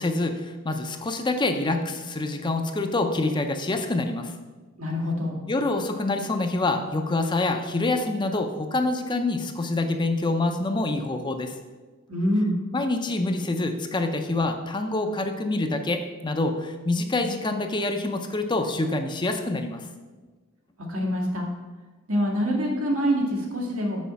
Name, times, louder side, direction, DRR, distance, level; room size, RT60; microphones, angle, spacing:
voice 1, 0.0-4.3 5.5-11.6 12.7-19.9, left 2 dB, 20° left, 5 dB, 0.5 m, -26 dB
voice 2, 4.8-5.4 12.1-12.5 20.9-21.5 22.1-24.0, equal, 85° right, -1 dB, 1.9 m, -25 dB
6.3 x 5.0 x 6.8 m, 1.3 s
head